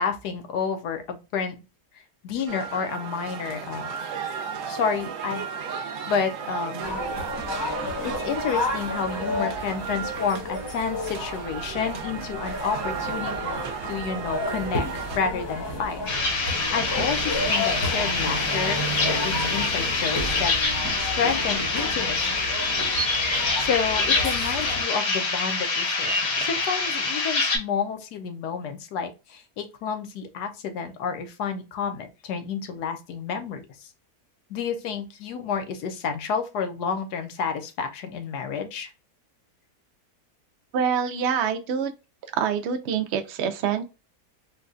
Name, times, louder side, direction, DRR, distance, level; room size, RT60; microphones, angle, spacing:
voice 1, 0.0-1.6 2.2-4.0 4.7-7.0 8.0-13.6 13.9-16.0 16.4-20.5 21.0-22.4 23.2-33.9 34.5-38.9, left 6 dB, 80° left, 1.2 m, -30 dB
sound 1, 2.5-15.2, right 7 dB, 65° right, 0.9 m, -34 dB
sound 2, 6.8-24.8, left 2 dB, 20° left, 0.7 m, -32 dB
sound 3, 16.1-27.6, left 3 dB, 50° left, 1.0 m, -25 dB
voice 2, 40.7-41.9 42.3-43.8, right 7 dB, 85° right, 0.6 m, -25 dB
3.9 x 2.2 x 2.5 m
omnidirectional pair, 1.8 m